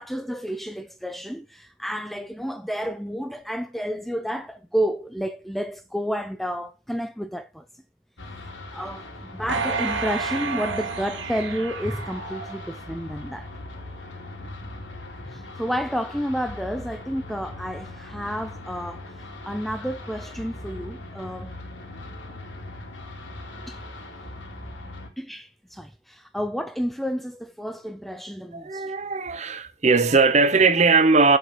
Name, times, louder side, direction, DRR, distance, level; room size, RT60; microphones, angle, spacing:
voice 1, 0.0-7.7 8.7-13.5 15.2-21.5 23.7-23.8 25.2-28.9, equal, ahead, 0.4 m, -30 dB
sound 1, 8.2-25.1, left 2 dB, 80° left, 2.8 m, -40 dB
sound 2, 9.5-12.9 13.4-13.5, right 4 dB, 75° right, 1.7 m, -30 dB
voice 2, 28.5-31.4, right 4 dB, 35° right, 0.9 m, -19 dB
7.2 x 5.8 x 5.4 m
head